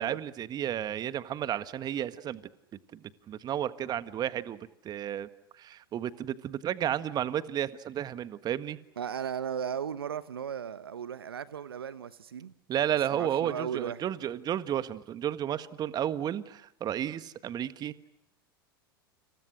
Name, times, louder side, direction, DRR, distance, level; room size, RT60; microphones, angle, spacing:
voice 1, 0.0-2.4 2.9-5.3 5.6-8.8 12.7-17.9, right 10 dB, 35° right, 13 dB, 1.6 m, -32 dB
voice 2, 9.0-12.5 13.1-14.0, right 8 dB, 80° right, 15 dB, 1.1 m, -36 dB
29.5 x 28.0 x 6.3 m, 0.80 s
hypercardioid pair, 90°, 12 cm